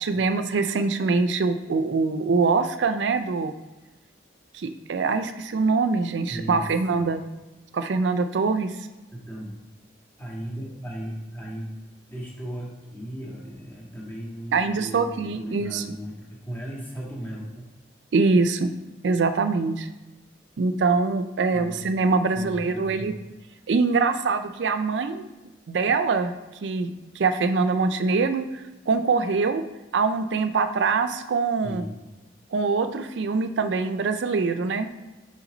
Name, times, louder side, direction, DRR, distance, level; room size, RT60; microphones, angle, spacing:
voice 1, 0.0-3.5 4.5-7.2 7.7-8.7 14.5-15.8 18.1-18.7 19.0-19.9 20.6-23.1 23.7-25.3 25.7-26.3 26.6-29.6 29.9-31.8 32.5-34.9, right 4 dB, 80° right, 9 dB, 0.4 m, -24 dB
voice 2, 6.3-7.0 9.1-9.5 10.2-11.7 12.1-17.6 21.5-21.8 22.3-23.1 31.6-31.9, equal, 10° left, -4 dB, 1.7 m, -36 dB
6.0 x 5.7 x 3.8 m, 1.1 s
head